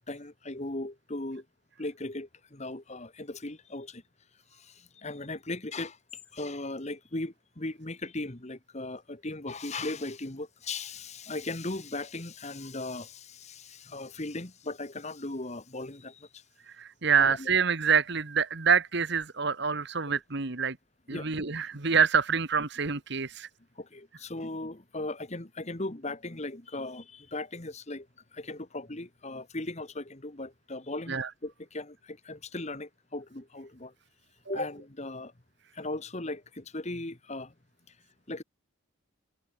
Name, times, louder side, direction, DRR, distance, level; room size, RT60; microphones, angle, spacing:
voice 1, 0.1-1.4 1.8-4.0 4.5-6.0 6.3-16.4 17.2-17.5 21.1-21.3 21.8-21.9 23.8-28.1 28.3-33.9 34.5-35.3 35.7-37.5 38.3-38.4, left 2 dB, 35° left, 1.6 m, -38 dB
voice 2, 16.7-20.7 21.1-23.5 31.1-31.3, right 6 dB, 55° right, 1.5 m, -26 dB
head